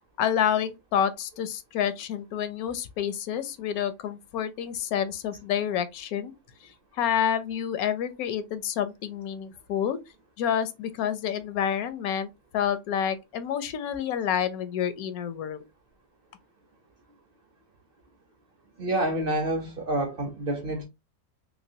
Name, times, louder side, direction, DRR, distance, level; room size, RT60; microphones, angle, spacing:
voice 1, 0.2-6.3 6.9-10.0 10.4-15.6, left 9 dB, 80° left, 1.0 m, -28 dB
voice 2, 18.8-20.8, right 1 dB, 50° right, 0.7 m, -28 dB
3.0 x 2.9 x 2.7 m
omnidirectional pair, 1.5 m